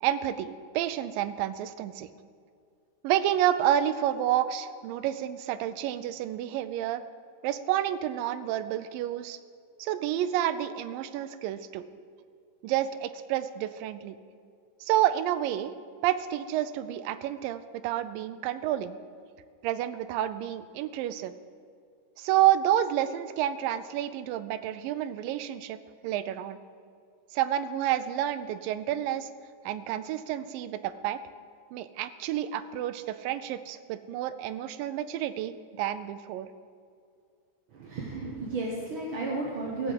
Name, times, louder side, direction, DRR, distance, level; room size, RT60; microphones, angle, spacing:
voice 1, 0.0-2.1 3.0-7.0 7.4-9.4 9.8-11.8 12.6-14.2 14.8-15.7 16.0-19.0 19.6-21.3 22.2-25.8 26.0-26.6 27.3-29.3 29.7-31.2 31.7-36.5, right 12 dB, 85° right, 12 dB, 2.3 m, -29 dB
voice 2, 37.7-39.9, right 3 dB, 65° right, -2 dB, 1.3 m, -33 dB
16.5 x 5.9 x 7.7 m, 2.2 s
omnidirectional pair, 3.9 m